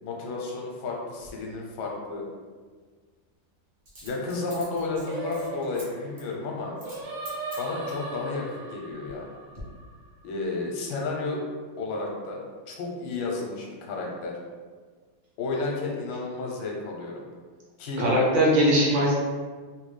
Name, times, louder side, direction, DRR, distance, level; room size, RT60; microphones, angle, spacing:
voice 1, 0.0-2.3 4.0-6.7 7.6-9.3 10.2-11.4 11.8-12.4 12.7-14.3 15.4-17.2 17.8-18.1, left 3 dB, 85° left, -1 dB, 1.5 m, -32 dB
Coin (dropping), 1.2-1.3 3.9-5.9 6.2-6.3 6.8-7.0 7.3-8.1 8.7-9.2 9.5-9.6, right 1 dB, 40° right, 0.6 m, -46 dB
Singing, 5.1-10.4, right 2 dB, 90° right, 1.6 m, -38 dB
voice 2, 18.0-19.1, equal, 70° right, -5 dB, 1.4 m, -20 dB
3.8 x 2.3 x 3.1 m, 1.5 s
omnidirectional pair, 2.2 m